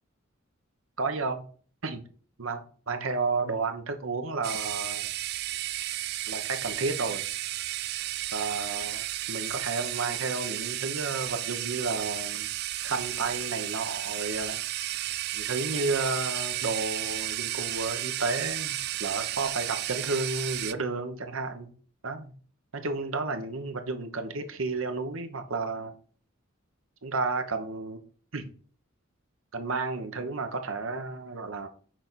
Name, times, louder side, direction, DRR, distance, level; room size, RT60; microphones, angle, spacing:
voice 1, 1.0-1.4 1.8-2.0 2.4-5.1 6.3-7.3 8.3-12.5 12.8-14.6 15.3-21.7 22.0-22.3 22.7-25.9 27.0-28.0 28.3-28.5 29.5-31.7, right 3 dB, 80° right, 1.1 m, -32 dB
sound 1, 4.4-20.7, right 14 dB, 55° right, 0.4 m, -33 dB
6.4 x 4.0 x 6.2 m
head